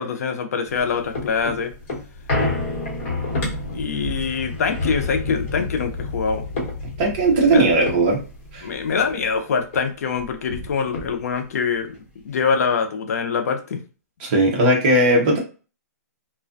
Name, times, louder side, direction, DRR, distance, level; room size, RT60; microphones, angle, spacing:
voice 1, 0.0-1.7 3.7-6.4 7.5-7.6 8.6-11.9 12.2-13.8, left 5 dB, 65° left, 6 dB, 0.5 m, -24 dB
sound 1, 0.7-9.4 9.7-9.8 10.1-11.5 11.9-12.0, left 2 dB, 40° left, 1.0 m, -29 dB
voice 2, 7.0-8.2 8.5-8.7 14.2-15.4, right 2 dB, 30° right, 0 dB, 0.7 m, -17 dB
2.4 x 2.1 x 2.4 m, 0.35 s
hypercardioid pair, 170°, 9 cm